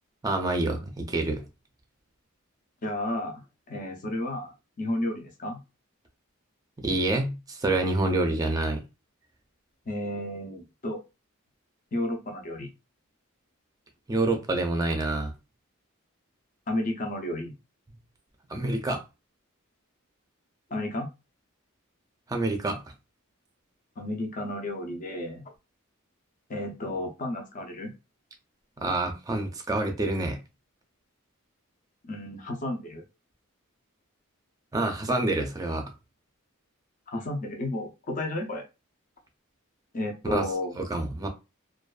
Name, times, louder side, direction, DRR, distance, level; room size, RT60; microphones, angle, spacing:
voice 1, 0.2-1.4 6.8-8.8 14.1-15.3 18.5-19.0 22.3-22.8 28.8-30.4 34.7-35.9 40.3-40.4 40.8-41.3, right 2 dB, 15° right, 0.5 m, -27 dB
voice 2, 2.8-5.6 9.9-11.0 11.9-12.7 16.7-17.5 20.7-21.1 24.0-25.5 26.5-27.9 32.0-33.0 37.1-38.6 39.9-40.7, left 1 dB, 40° left, 0.6 m, -32 dB
2.5 x 2.3 x 2.3 m
head